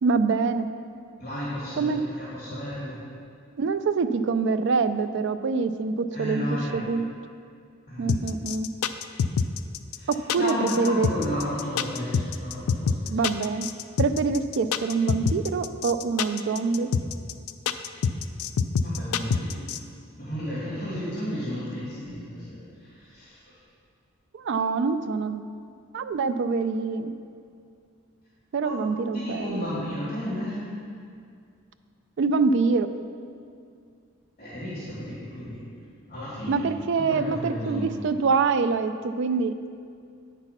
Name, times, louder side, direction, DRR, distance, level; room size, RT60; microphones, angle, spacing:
voice 1, 0.0-0.7 1.8-2.0 3.6-6.5 6.7-7.1 8.0-8.7 10.1-11.1 13.1-13.7 14.0-16.9 24.3-25.4 25.9-27.1 28.5-29.7 32.2-32.9 36.5-39.5, right 4 dB, 55° right, 10 dB, 0.3 m, -25 dB
voice 2, 1.2-3.0 6.1-6.8 7.9-8.1 9.9-10.1 10.4-13.2 18.8-19.7 20.2-23.4 28.6-28.7 29.1-30.7 34.4-35.6 36.1-36.6 37.0-37.9, equal, 35° left, -9 dB, 1.8 m, -33 dB
sound 1, 8.1-19.8, left 6 dB, 80° left, 0.3 m, -26 dB
8.8 x 4.1 x 5.7 m, 2.3 s
head